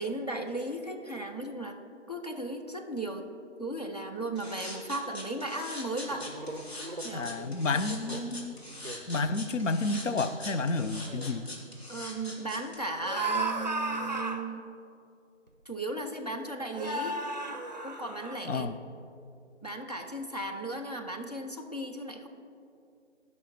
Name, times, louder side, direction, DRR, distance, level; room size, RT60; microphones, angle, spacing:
voice 1, 0.0-1.8 2.1-3.3 3.6-6.3 7.0-8.1 11.9-14.7 15.7-17.2 17.8-18.7 19.6-22.3, right 1 dB, 35° left, 1 dB, 0.6 m, -36 dB
sound 1, 4.4-12.8, left 1 dB, 55° left, 2.1 m, -42 dB
sound 2, 6.1-7.1 7.9-8.2 8.6-9.0 9.7-9.8 10.1-10.4 11.0-11.3 13.0-14.5 15.5-15.6 16.7-18.3, right 2 dB, 35° right, 0.6 m, -35 dB
voice 2, 7.1-8.5 9.1-11.5 18.5-18.7, left 3 dB, 80° left, 11 dB, 0.7 m, -30 dB
10.5 x 5.6 x 5.8 m, 2.5 s
figure-of-eight pair, 175°, 37 cm